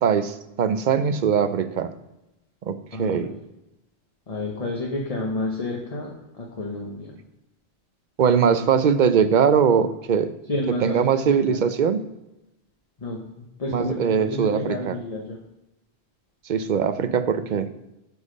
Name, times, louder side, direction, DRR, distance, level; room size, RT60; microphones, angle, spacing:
voice 1, 0.0-1.9 2.6-3.3 8.2-10.3 10.8-12.0 13.7-15.0 16.5-17.7, right 7 dB, 55° right, 11 dB, 0.7 m, -21 dB
voice 2, 2.9-3.4 4.3-7.1 10.5-11.6 13.0-15.4, left 2 dB, 35° left, -1 dB, 1.1 m, -30 dB
8.1 x 5.5 x 5.1 m, 0.93 s
omnidirectional pair, 1.1 m